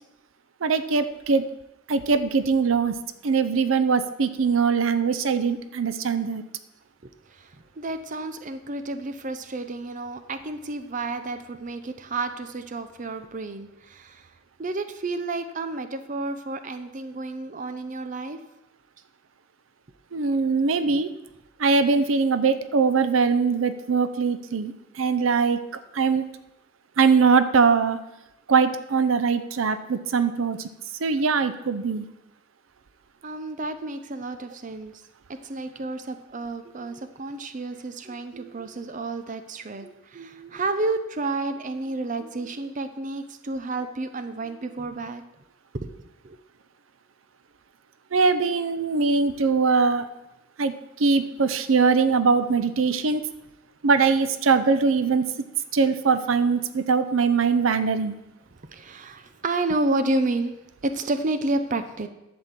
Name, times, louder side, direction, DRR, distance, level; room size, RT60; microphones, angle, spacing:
voice 1, 0.6-1.4 1.9-2.9 3.2-6.4 20.1-21.1 21.6-25.6 25.9-26.2 27.0-28.0 28.5-30.7 31.0-32.0 48.1-50.1 50.6-50.7 51.0-53.3 53.8-55.3 55.7-58.1, right 5 dB, 90° right, 11 dB, 0.6 m, -22 dB
voice 2, 7.3-14.3 14.6-18.4 20.8-21.0 33.2-35.0 35.4-45.2 45.7-46.4 58.7-60.5 60.8-62.1, right 2 dB, 40° right, 9 dB, 0.6 m, -30 dB
11.0 x 4.3 x 7.4 m, 0.92 s
head